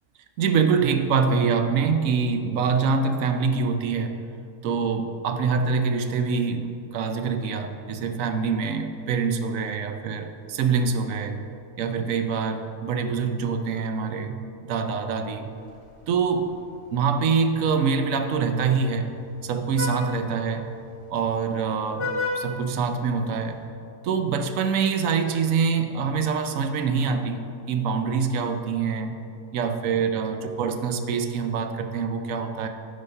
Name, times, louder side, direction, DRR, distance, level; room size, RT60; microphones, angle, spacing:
voice 1, 0.4-4.2 4.6-11.4 11.8-15.5 16.1-16.5 16.9-19.1 19.4-20.7 21.1-22.1 22.3-23.6 24.0-29.1 29.5-32.7, right 5 dB, 75° right, 7 dB, 1.0 m, -25 dB
Vehicle horn car horn honking, 15.5-23.6, left 3 dB, 30° left, 0.6 m, -37 dB
9.9 x 4.2 x 5.5 m, 2.5 s
omnidirectional pair, 1.4 m